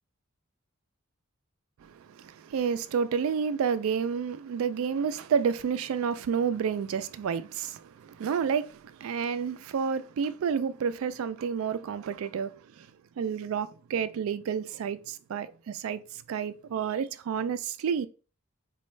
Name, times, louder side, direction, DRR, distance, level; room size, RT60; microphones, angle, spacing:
voice 1, 1.8-12.9 13.2-18.1, right 6 dB, 75° right, 0.3 m, -30 dB
4.1 x 2.3 x 3.1 m
head